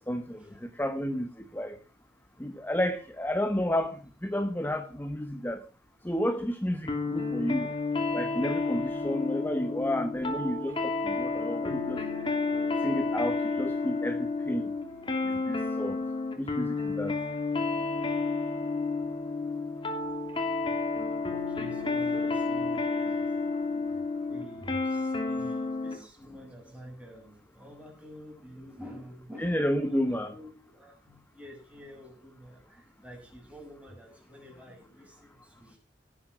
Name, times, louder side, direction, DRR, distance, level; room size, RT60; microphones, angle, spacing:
voice 1, 0.0-1.8 2.4-5.6 6.0-7.7 8.1-12.0 12.8-14.7 15.2-16.0 16.4-17.1 29.4-30.3, equal, 10° left, 1.0 m, -31 dB
sound 1, 6.9-26.0, left 3 dB, 30° left, 2.9 m, -31 dB
voice 2, 21.0-35.8, equal, 5° right, 6.2 m, -48 dB
17.0 x 8.7 x 6.1 m
head